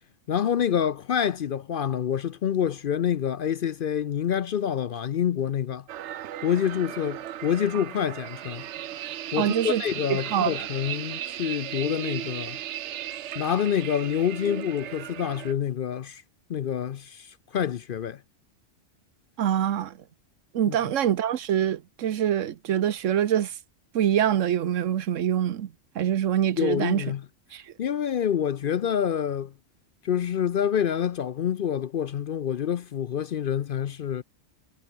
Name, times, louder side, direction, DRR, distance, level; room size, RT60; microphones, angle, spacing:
voice 1, 0.3-5.8 6.4-8.6 9.3-12.6 13.4-16.2 16.5-18.2 20.7-20.8 26.6-27.2 27.8-29.5 30.0-34.2, left 9 dB, 55° left, 0.6 m, -27 dB
sound 1, 5.9-15.5, right 11 dB, 70° right, 1.0 m, -36 dB
voice 2, 9.4-9.8 10.1-10.5 19.4-20.0 20.5-23.5 23.9-27.0 27.5-27.6, right 10 dB, 90° right, 1.2 m, -25 dB
omnidirectional pair, 1.3 m